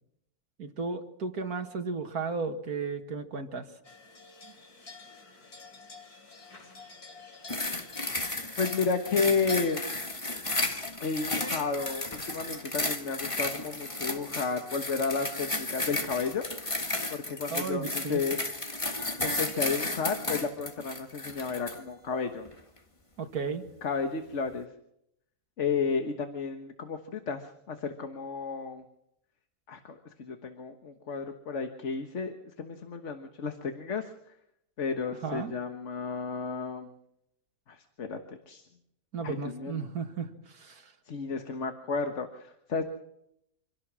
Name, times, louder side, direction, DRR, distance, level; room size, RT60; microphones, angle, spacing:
voice 1, 0.6-3.7 4.4-4.5 17.5-18.4 23.2-23.6 35.1-35.5 39.1-40.9, right 4 dB, 75° right, 6 dB, 2.4 m, -34 dB
sound 1, 3.8-10.0, left 4 dB, 80° left, 3.6 m, -48 dB
sound 2, 7.5-21.8 22.5-22.6, left 2 dB, 20° left, 1.7 m, -33 dB
voice 2, 8.6-9.9 11.0-16.4 17.1-18.4 19.2-22.5 23.8-24.7 25.6-28.8 29.7-34.1 34.8-36.9 37.7-38.6 39.2-39.8 41.1-42.8, left 5 dB, 50° left, 6 dB, 1.6 m, -32 dB
26.0 x 17.0 x 6.2 m, 0.78 s
omnidirectional pair, 1.6 m